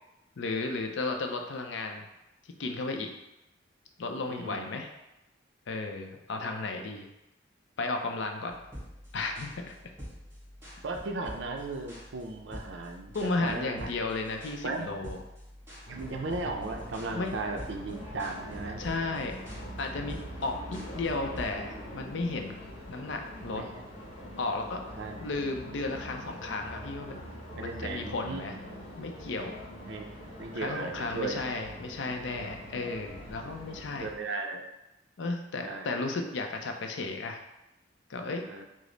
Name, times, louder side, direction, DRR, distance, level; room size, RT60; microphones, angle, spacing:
voice 1, 0.4-2.1 2.4-3.1 4.0-4.9 5.7-7.1 7.8-8.6 9.1-9.7 13.1-15.2 17.1-17.3 18.8-19.4 19.8-20.2 20.4-22.6 22.9-23.6 24.4-24.8 25.2-27.2 27.5-28.6 29.0-29.6 30.5-34.1 35.2-37.4 38.1-38.4, left 3 dB, 70° left, 4 dB, 0.5 m, -34 dB
voice 2, 4.3-4.8 10.8-13.9 14.6-14.9 15.9-18.8 23.5-23.7 25.0-25.2 27.6-28.4 29.8-30.1 30.4-31.4 33.4-33.5 34.0-34.6 35.6-35.9 38.5-38.7, right 3 dB, 70° right, 3 dB, 0.5 m, -36 dB
sound 1, 8.5-21.5, equal, 15° right, 1.0 m, -47 dB
sound 2, 15.9-34.1, equal, 30° left, 0.9 m, -43 dB
4.9 x 2.0 x 3.9 m, 0.93 s
head